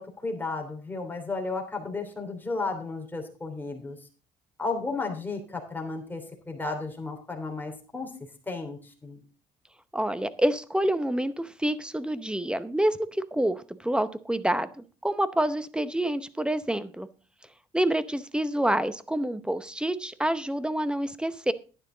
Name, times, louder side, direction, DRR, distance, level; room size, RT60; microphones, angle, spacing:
voice 1, 0.0-4.0 4.6-8.1 8.5-9.2, left 3 dB, 10° left, 3 dB, 3.1 m, -33 dB
voice 2, 9.9-17.1 17.7-21.5, right 1 dB, 5° right, 14 dB, 0.7 m, -27 dB
11.0 x 9.9 x 3.8 m, 0.36 s
cardioid pair, 110°, 17 cm